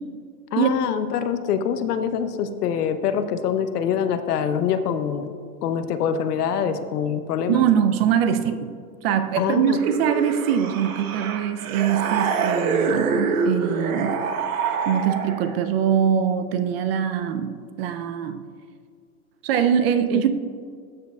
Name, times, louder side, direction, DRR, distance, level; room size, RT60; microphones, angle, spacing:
voice 1, 0.5-5.3 5.6-7.6 9.4-9.8 20.1-20.2, left 8 dB, 85° left, 10 dB, 0.8 m, -24 dB
voice 2, 7.5-8.7 9.0-14.2 14.9-18.4 19.4-20.3, right 8 dB, 45° right, 10 dB, 0.5 m, -22 dB
sound 1, 9.8-15.6, right 5 dB, 65° right, 1.0 m, -26 dB
13.0 x 6.6 x 2.3 m, 2.1 s
supercardioid pair, 140°, 45 cm